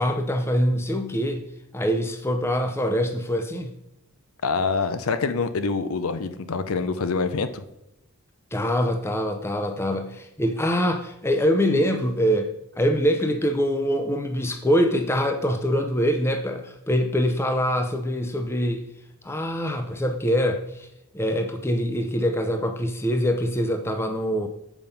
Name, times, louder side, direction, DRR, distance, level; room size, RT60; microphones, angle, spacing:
voice 1, 0.0-1.4 1.7-3.7 8.5-18.8 19.2-20.9 21.1-24.5, equal, 10° left, 6 dB, 0.6 m, -24 dB
voice 2, 4.4-7.6, left 4 dB, 75° left, 11 dB, 0.6 m, -25 dB
7.1 x 5.3 x 5.7 m, 0.86 s
head